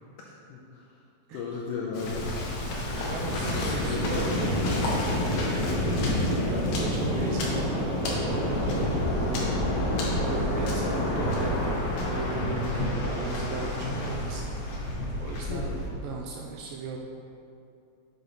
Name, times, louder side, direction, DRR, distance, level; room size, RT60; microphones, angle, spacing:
voice 1, 1.3-2.3 3.7-4.0 5.9-6.2 12.9-13.2 15.5-15.8, left 5 dB, 85° left, -2 dB, 1.8 m, -36 dB
Waves surf, 1.9-15.9, left 1 dB, 65° left, 1.9 m, -28 dB
voice 2, 2.9-4.6 5.0-5.6 6.5-9.4 10.2-14.5 15.2-17.0, right 4 dB, 80° right, -1 dB, 2.1 m, -37 dB
7.9 x 6.7 x 3.0 m, 2.6 s
omnidirectional pair, 4.1 m